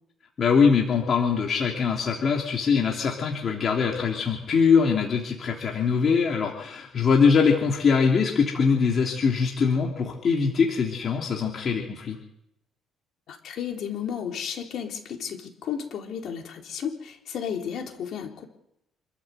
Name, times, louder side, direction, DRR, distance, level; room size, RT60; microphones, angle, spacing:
voice 1, 0.4-12.2, left 5 dB, 40° left, 0 dB, 3.0 m, -22 dB
voice 2, 13.3-18.5, left 8 dB, 60° left, 2 dB, 4.0 m, -33 dB
27.5 x 13.0 x 8.0 m, 0.79 s
cardioid pair, 125°, 0 cm